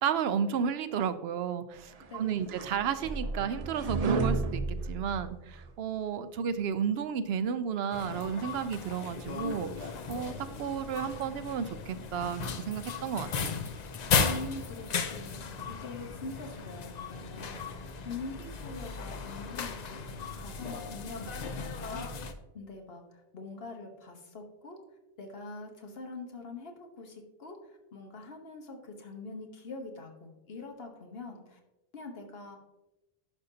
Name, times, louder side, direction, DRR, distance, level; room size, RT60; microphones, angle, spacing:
voice 1, 0.0-13.6, right 7 dB, 80° right, 12 dB, 0.8 m, -32 dB
sound 1, 2.0-5.7, right 3 dB, 45° right, 0.6 m, -32 dB
voice 2, 2.1-2.4 14.1-24.8 25.2-31.6 31.9-32.6, left 3 dB, 75° left, 3 dB, 1.3 m, -44 dB
sound 2, 7.9-22.3, left 5 dB, 50° left, 0.6 m, -36 dB
10.5 x 5.3 x 2.7 m, 0.98 s
omnidirectional pair, 1.0 m